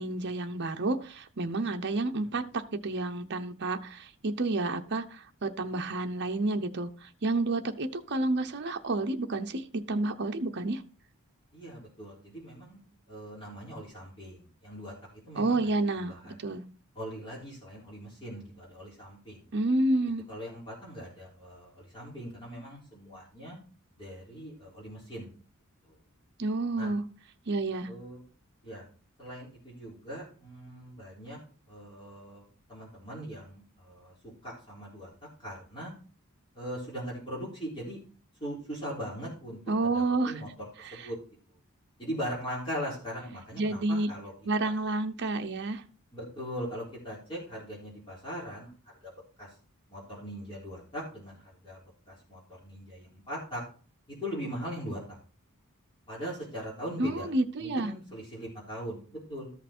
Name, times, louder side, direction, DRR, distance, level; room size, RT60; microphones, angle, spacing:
voice 1, 0.0-10.8 15.3-16.6 19.5-20.2 26.4-27.0 27.5-27.9 39.7-40.3 40.8-41.1 43.6-44.1 44.4-45.8 57.0-57.9, right 2 dB, 50° right, 6 dB, 0.8 m, -30 dB
voice 2, 11.5-12.8 13.1-14.9 15.3-15.6 16.0-16.4 17.0-19.4 20.3-23.6 24.0-25.3 25.8-26.0 26.8-26.9 27.9-28.2 28.6-28.9 29.2-31.4 31.7-32.4 32.7-35.1 35.4-35.9 36.6-38.0 38.4-40.5 40.8-41.2 42.0-44.3 44.6-44.7 46.1-48.7 49.0-49.5 49.9-53.6 54.2-55.2 56.1-57.3 57.6-59.5, equal, 25° left, -6 dB, 3.8 m, -40 dB
13.5 x 5.8 x 4.4 m, 0.40 s
head